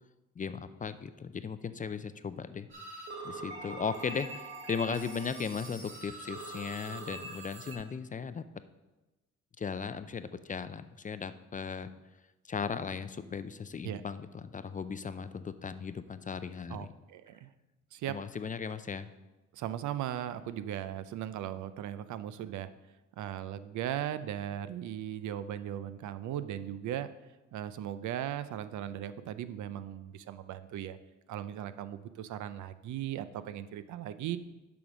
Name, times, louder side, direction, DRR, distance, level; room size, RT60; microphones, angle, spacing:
voice 1, 0.4-2.7 3.2-8.4 9.6-11.9 12.4-16.9 18.1-19.1, left 6 dB, 25° left, 12 dB, 0.4 m, -37 dB
sound 1, 2.7-7.8, right 2 dB, 40° right, 2.7 m, -43 dB
voice 2, 16.7-17.5 17.9-18.2 19.5-22.7 23.2-27.1 27.5-31.0 31.3-34.4, right 11 dB, 75° right, 13 dB, 0.5 m, -38 dB
7.1 x 5.1 x 6.2 m, 1.1 s
cardioid pair, 90°, 30 cm